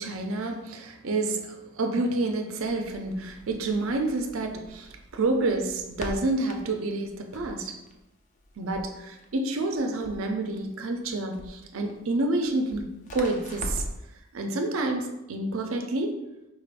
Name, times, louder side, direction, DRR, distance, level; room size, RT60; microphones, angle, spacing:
voice 1, 0.0-7.8 8.6-12.9 13.1-13.8 14.3-16.2, right 2 dB, 75° right, 4 dB, 0.5 m, -29 dB
Crackle, 2.6-14.1, left 1 dB, 35° left, 0.4 m, -42 dB
4.0 x 2.5 x 4.6 m, 0.96 s
head